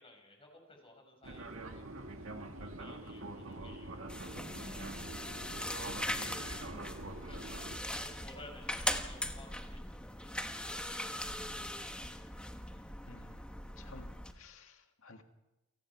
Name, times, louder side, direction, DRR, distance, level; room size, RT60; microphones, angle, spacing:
voice 1, 0.0-2.3 2.5-6.1 7.2-11.3 12.7-12.9, left 1 dB, 25° left, 2 dB, 5.8 m, -57 dB
Fixed-wing aircraft airplane, 1.2-7.8, right 2 dB, 70° right, 2.1 m, -45 dB
sound 1, 4.1-14.3, left 1 dB, 5° left, 1.3 m, -40 dB
voice 2, 13.1-13.5 13.8-14.1 14.3-15.3, left 3 dB, 70° left, 5 dB, 2.1 m, -55 dB
29.0 x 18.5 x 4.8 m, 0.97 s
head